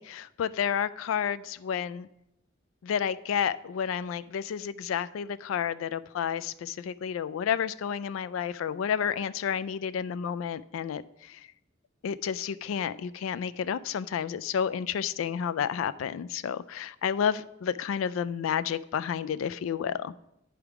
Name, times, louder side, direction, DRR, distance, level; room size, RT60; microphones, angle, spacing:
voice 1, 0.0-2.1 2.8-11.5 12.0-20.1, left 8 dB, 85° left, 15 dB, 0.3 m, -31 dB
9.9 x 3.5 x 4.7 m, 0.82 s
head